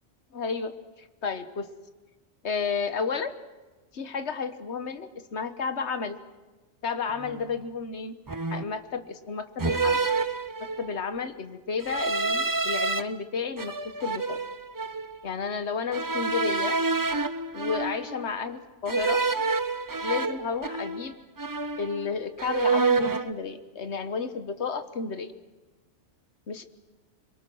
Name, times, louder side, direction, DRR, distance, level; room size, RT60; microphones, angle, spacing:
voice 1, 0.3-0.7 1.0-1.7 2.4-3.3 3.9-6.2 6.8-8.1 8.5-10.1 10.8-13.7 14.0-14.4 15.2-16.8 17.5-19.2 20.0-21.1 21.8-25.3 26.5-26.6, left 5 dB, 65° left, 10 dB, 1.5 m, -32 dB
sound 1, 7.2-7.4 8.3-8.8 9.6-11.0 11.8-13.0 13.6-15.1 15.9-18.3 18.9-21.1 21.4-22.1 22.4-23.3, right 4 dB, 25° right, 0.5 m, -28 dB
25.5 x 22.5 x 6.3 m, 1.2 s
omnidirectional pair, 1.2 m